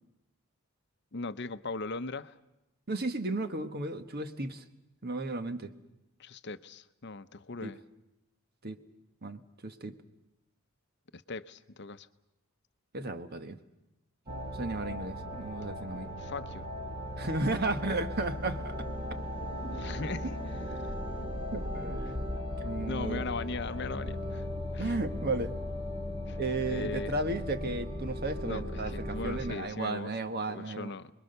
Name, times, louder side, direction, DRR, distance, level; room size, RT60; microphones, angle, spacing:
voice 1, 1.1-2.3 6.2-7.8 11.1-12.1 16.0-16.7 19.7-20.4 20.8-20.9 22.9-24.4 24.7-24.9 26.3-27.1 28.4-30.1 30.5-31.1, left 3 dB, 55° left, 12 dB, 0.8 m, -39 dB
voice 2, 2.9-4.6 5.0-5.7 7.6-7.7 8.6-8.8 9.2-10.0 12.9-13.6 14.3-16.1 17.2-18.9 19.6-19.8 21.5-22.2 22.6-23.3 24.8-25.5 26.4-30.9, right 2 dB, 45° right, 8 dB, 1.4 m, -34 dB
sound 1, 14.3-29.5, left 1 dB, 30° right, 2.1 m, -37 dB
29.0 x 21.5 x 6.7 m, 0.92 s
head